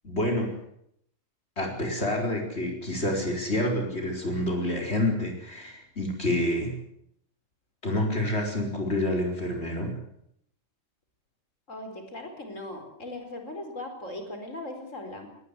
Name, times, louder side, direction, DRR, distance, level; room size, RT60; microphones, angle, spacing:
voice 1, 0.0-0.5 1.6-6.7 7.8-9.9, left 1 dB, 55° left, 1 dB, 4.8 m, -28 dB
voice 2, 11.7-15.3, left 1 dB, 70° left, 5 dB, 5.1 m, -39 dB
20.5 x 19.0 x 8.3 m, 0.73 s
omnidirectional pair, 1.4 m